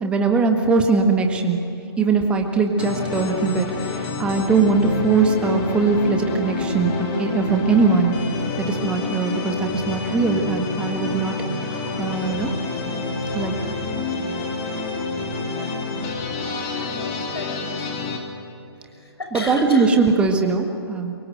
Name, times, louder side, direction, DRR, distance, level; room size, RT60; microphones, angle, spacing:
voice 1, 0.0-1.6 2.0-8.2 8.6-11.4 11.6-12.5 13.3-13.7 19.3-21.1, right 4 dB, 10° right, 4 dB, 1.7 m, -21 dB
sound 1, 2.8-18.2, left 3 dB, 20° left, 2.9 m, -28 dB
voice 2, 16.8-17.9 18.9-19.9, left 2 dB, 65° left, 3 dB, 6.6 m, -34 dB
28.0 x 24.0 x 8.0 m, 2.7 s
figure-of-eight pair, 135°, 14 cm